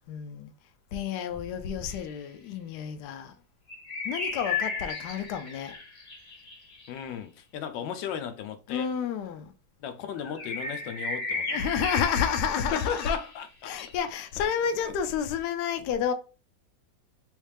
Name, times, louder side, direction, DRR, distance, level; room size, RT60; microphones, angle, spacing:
voice 1, 0.1-0.5 0.9-3.3 4.0-5.8 8.7-9.5 11.5-13.1 13.7-16.1, left 7 dB, 75° left, 1.1 m, -30 dB
sound 1, 1.9-2.0 3.7-7.0 10.2-14.0, left 4 dB, 50° left, 0.6 m, -35 dB
voice 2, 6.9-8.9 9.8-11.7 12.7-13.7 14.4-14.5, left 8 dB, 90° left, 1.3 m, -35 dB
3.2 x 3.1 x 3.3 m
omnidirectional pair, 2.0 m